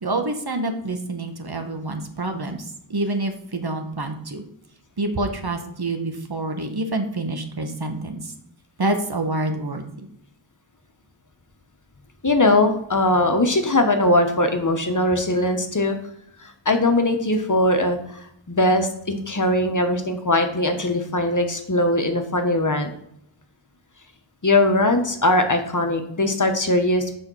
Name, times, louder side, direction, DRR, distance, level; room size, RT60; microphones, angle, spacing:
voice 1, 0.0-4.4 5.0-8.3 8.8-10.1, right 2 dB, 50° right, 5 dB, 1.4 m, -27 dB
voice 2, 12.2-16.0 16.4-22.9 24.4-27.1, left 1 dB, 40° left, 6 dB, 1.1 m, -20 dB
6.6 x 5.1 x 6.2 m, 0.74 s
wide cardioid pair, 50°, 48 cm